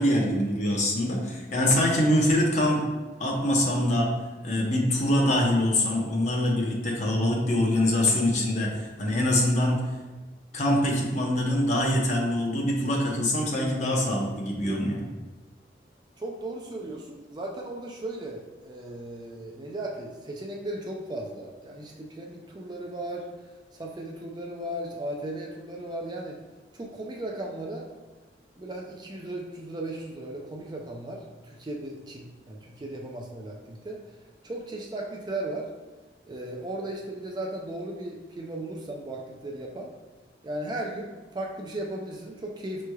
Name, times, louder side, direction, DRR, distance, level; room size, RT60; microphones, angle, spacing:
voice 1, 0.0-2.8 3.2-4.1 4.4-9.8 10.5-15.0, left 1 dB, 40° left, -1 dB, 0.7 m, -24 dB
voice 2, 16.2-23.3 23.7-26.4 26.7-27.9 28.6-34.0 34.4-35.7 36.3-39.9 40.4-42.9, right 1 dB, 25° right, 0 dB, 0.4 m, -36 dB
5.7 x 3.1 x 2.3 m, 1.2 s
head